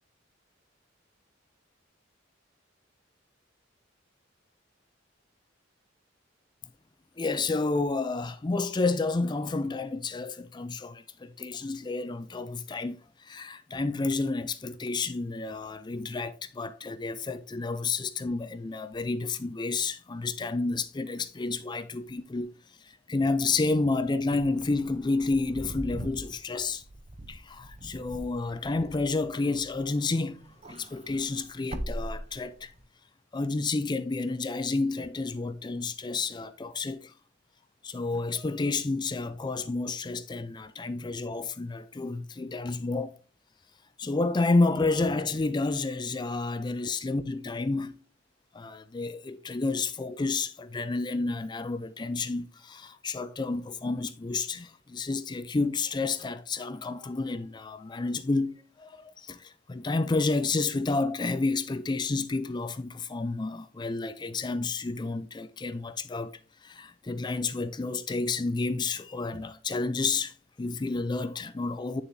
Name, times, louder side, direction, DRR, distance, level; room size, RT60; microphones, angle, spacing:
voice 1, 7.2-22.5 22.8-26.8 27.3-30.4 30.7-32.7 33.3-37.1 37.8-43.2 44.0-47.9 48.5-72.0, left 3 dB, 20° left, 0.4 m, -30 dB
Wind / Car, 24.2-30.0 30.4-32.8, right 1 dB, 35° right, 0.6 m, -41 dB
9.0 x 6.9 x 2.7 m
head